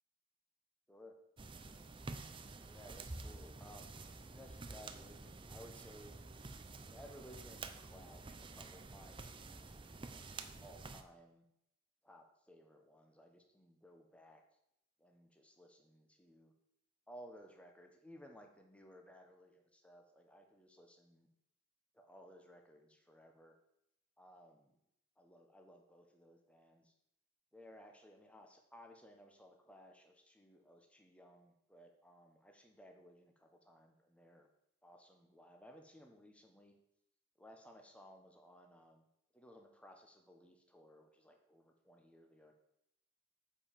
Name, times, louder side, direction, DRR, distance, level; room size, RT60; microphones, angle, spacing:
sound 1, 1.4-11.0, right 3 dB, 25° right, 0.6 m, -50 dB
voice 1, 2.7-6.2 6.9-9.8 10.6-11.4 12.0-14.4 15.0-16.5 17.1-21.3 21.9-23.6 24.2-24.7 25.2-26.9 27.5-34.5 34.8-36.7 37.4-39.1 39.3-42.5, equal, 5° left, 3 dB, 1.1 m, -59 dB
9.1 x 5.3 x 7.5 m, 0.80 s
head